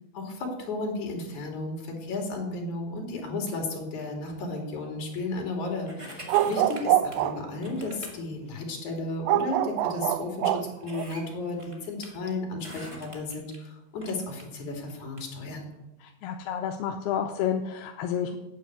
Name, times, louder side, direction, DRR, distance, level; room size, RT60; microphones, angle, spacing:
voice 1, 0.1-15.7, left 2 dB, 50° left, 1 dB, 3.9 m, -34 dB
sound 1, 5.9-7.3 7.6-8.2 9.0-9.1 9.8-9.9 10.2-10.3 10.8-12.1 12.6-13.6 14.0-15.2 15.7-15.8, equal, 25° right, 0.7 m, -44 dB
sound 2, 6.3-7.6 9.3-11.0, right 13 dB, 85° right, 2.2 m, -25 dB
voice 2, 16.0-18.4, left 8 dB, 80° left, 4 dB, 2.5 m, -30 dB
9.3 x 8.7 x 8.1 m, 0.98 s
omnidirectional pair, 4.9 m